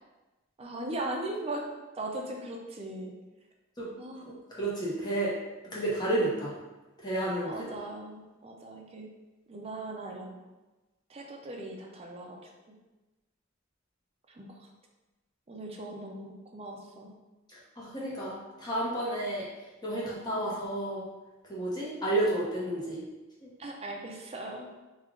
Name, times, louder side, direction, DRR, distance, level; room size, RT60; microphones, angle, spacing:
voice 1, 0.6-1.6 2.0-3.1 4.0-4.3 7.4-9.1 9.5-10.4 11.1-12.5 14.3-14.6 15.5-17.1 20.3-20.4 23.6-24.7, right 2 dB, 30° right, 0 dB, 0.5 m, -39 dB
voice 2, 4.2-5.3 5.7-6.5 7.0-7.5 17.8-19.5 19.8-21.0 21.5-23.0, right 1 dB, 20° left, -7 dB, 0.9 m, -31 dB
3.2 x 2.4 x 3.7 m, 1.1 s
head